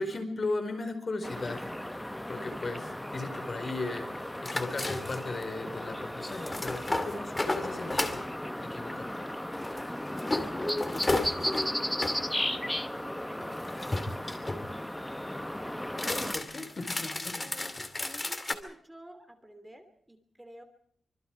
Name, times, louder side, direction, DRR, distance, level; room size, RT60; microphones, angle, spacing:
voice 1, 0.0-1.9 2.3-8.2 8.6-9.1 16.0-17.6, left 3 dB, 45° left, 7 dB, 4.6 m, -37 dB
sound 1, 1.2-16.4, left 1 dB, 10° left, 1.1 m, -35 dB
sound 2, 4.4-5.4 6.3-8.2 9.5-12.2 13.4-14.7 15.9-18.5, left 2 dB, 25° left, 2.5 m, -33 dB
voice 2, 10.3-12.3 13.1-14.9 15.5-15.8 16.6-16.7 17.4-20.6, right 1 dB, 10° right, 7 dB, 3.0 m, -51 dB
25.5 x 25.5 x 4.7 m, 0.63 s
wide cardioid pair, 95°, 0 cm